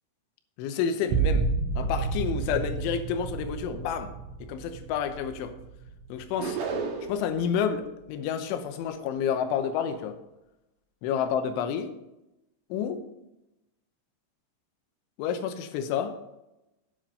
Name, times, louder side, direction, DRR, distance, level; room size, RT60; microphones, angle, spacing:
voice 1, 0.6-1.5 1.8-4.1 4.4-5.6 6.1-6.6 7.1-10.2 11.0-11.9 12.7-13.0 15.2-16.2, left 7 dB, 85° left, 8 dB, 3.3 m, -29 dB
sound 1, 1.1-6.6 7.0-7.6, right 5 dB, 80° right, 3.0 m, -31 dB
sound 2, 6.4-7.3, right 4 dB, 60° right, 2.4 m, -31 dB
8.9 x 7.6 x 5.5 m, 0.91 s
omnidirectional pair, 5.4 m